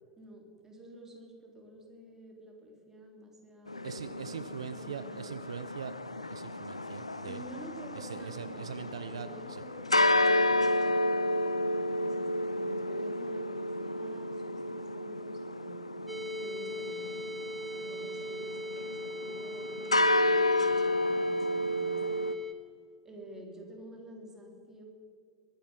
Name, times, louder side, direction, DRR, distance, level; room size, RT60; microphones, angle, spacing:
voice 1, 0.2-5.4 7.2-8.7 9.0-15.9 16.3-17.3 17.7-22.2 23.0-24.8, right 1 dB, 15° right, 0 dB, 3.8 m, -50 dB
sound 1, 3.7-22.3, left 1 dB, 85° left, 0.5 m, -31 dB
voice 2, 3.8-5.9 6.3-7.4 7.9-9.3, right 8 dB, 70° right, 12 dB, 0.5 m, -41 dB
sound 2, 16.1-22.5, equal, ahead, 0.9 m, -40 dB
22.0 x 10.0 x 5.7 m, 2.4 s
figure-of-eight pair, 80°, 3 cm